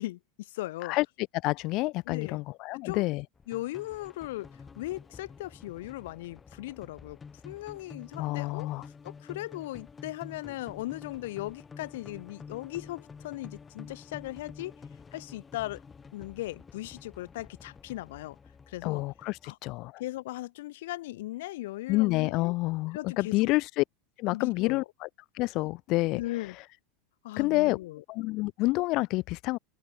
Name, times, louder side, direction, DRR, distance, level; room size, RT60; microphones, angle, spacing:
voice 1, 0.0-1.0 2.1-2.4 2.7-3.1 3.5-7.2 7.4-8.7 9.0-14.8 15.1-15.8 16.1-18.4 18.7-19.0 19.4-19.6 20.0-22.5 22.9-23.5 24.3-24.8 26.1-26.6 27.2-28.0, left 17 dB, 80° left, 2.4 m, -38 dB
voice 2, 0.8-3.2 8.2-8.8 18.8-20.0 21.9-23.8 24.2-25.1 25.3-26.6 27.4-27.8 28.1-29.6, left 21 dB, 50° left, 1.8 m, -28 dB
sound 1, 3.4-19.5, left 5 dB, 15° left, 3.2 m, -49 dB
open air
supercardioid pair, 140°, 0 cm